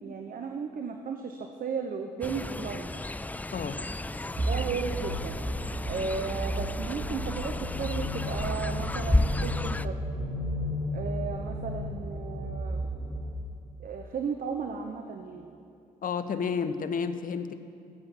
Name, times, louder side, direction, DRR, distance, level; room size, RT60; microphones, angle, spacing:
voice 1, 0.0-2.9 4.5-5.4 5.8-10.0 10.9-12.8 13.8-15.5, right 5 dB, 50° right, 4 dB, 0.9 m, -35 dB
Fowl, 2.2-9.9, left 2 dB, 10° left, 0.4 m, -33 dB
voice 2, 3.5-3.8 16.0-17.5, left 6 dB, 45° left, 11 dB, 0.8 m, -31 dB
sound 1, 4.4-13.3, equal, 65° right, 2.3 m, -33 dB
14.5 x 7.9 x 6.1 m, 2.5 s
hypercardioid pair, 40°, 19 cm